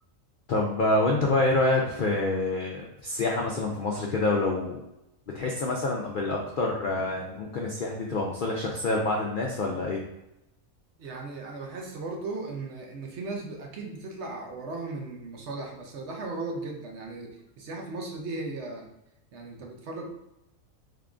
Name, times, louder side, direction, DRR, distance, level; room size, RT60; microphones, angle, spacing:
voice 1, 0.5-4.8 5.3-10.0, left 2 dB, 90° left, -1 dB, 0.4 m, -27 dB
voice 2, 11.0-18.9 19.3-20.1, right 3 dB, 60° right, 1 dB, 0.9 m, -37 dB
3.6 x 3.5 x 2.5 m, 0.88 s
omnidirectional pair, 1.5 m